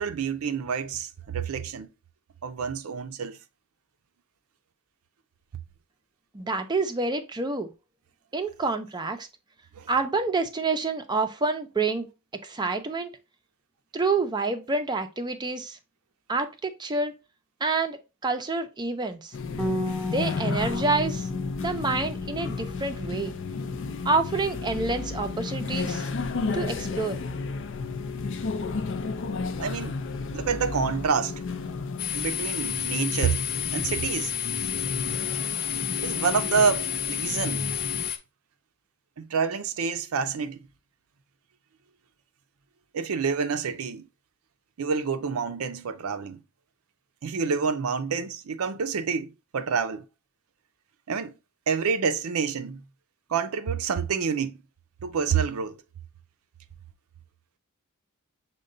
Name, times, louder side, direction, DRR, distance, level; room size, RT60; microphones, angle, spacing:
voice 1, 0.0-1.9 2.4-3.4 9.8-9.9 19.5-19.6 29.6-30.0 30.3-31.4 32.1-33.4 33.7-34.3 36.0-37.7 39.2-40.6 42.9-44.1 44.8-46.4 47.2-50.0 51.1-51.3 51.7-52.8 53.3-54.6 55.0-55.8, right 6 dB, 80° right, 0.5 m, -28 dB
voice 2, 6.3-7.7 8.3-9.3 9.9-12.1 12.4-13.2 13.9-15.8 16.3-17.1 17.6-19.3 20.0-21.3 21.6-23.4 24.0-26.1 26.5-27.2, right 3 dB, 20° right, 0.5 m, -28 dB
sound 1, 19.3-38.1, left 4 dB, 60° left, 0.5 m, -33 dB
Bass guitar, 19.6-25.8, left 2 dB, 5° left, 0.8 m, -35 dB
sound 2, 32.0-38.2, left 10 dB, 45° left, 0.9 m, -31 dB
6.5 x 2.2 x 3.7 m
head